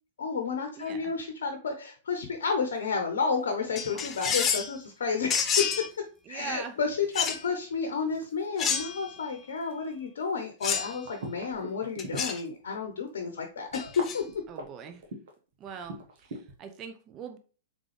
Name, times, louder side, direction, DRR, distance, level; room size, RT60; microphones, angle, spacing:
voice 1, 0.2-5.7 6.3-14.2, left 5 dB, 75° left, 0.7 m, -31 dB
voice 2, 0.7-1.1 6.3-6.8 14.5-15.0 15.6-17.4, right 7 dB, 35° right, 0.6 m, -42 dB
sound 1, 2.1-12.7 13.1-13.2 13.7-16.7, right 2 dB, 65° right, 1.3 m, -44 dB
sound 2, 3.8-4.7 5.3-5.9 7.1-7.4 8.6-9.1 10.6-11.0 12.0-12.4 13.7-14.2, left 7 dB, 25° left, 0.6 m, -29 dB
3.7 x 3.6 x 3.3 m
hypercardioid pair, 110°, 0 cm